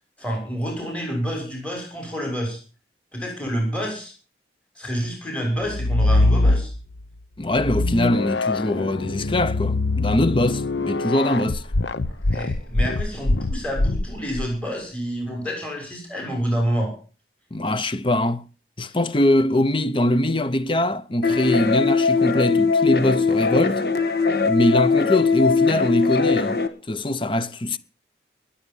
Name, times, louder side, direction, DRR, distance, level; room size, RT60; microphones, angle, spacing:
voice 1, 0.2-2.6 3.1-4.1 4.8-6.7 12.1-16.9, equal, 5° left, 6.6 m, -28 dB
sound 1, 5.6-7.0 7.5-14.5, left 2 dB, 80° left, 0.8 m, -23 dB
voice 2, 7.4-11.6 17.5-18.4 18.8-23.8 24.4-26.6 26.9-27.8, left 1 dB, 30° left, 0.8 m, -22 dB
sound 2, 21.2-26.7, left 4 dB, 60° left, 1.6 m, -20 dB
21.0 x 8.6 x 5.5 m
head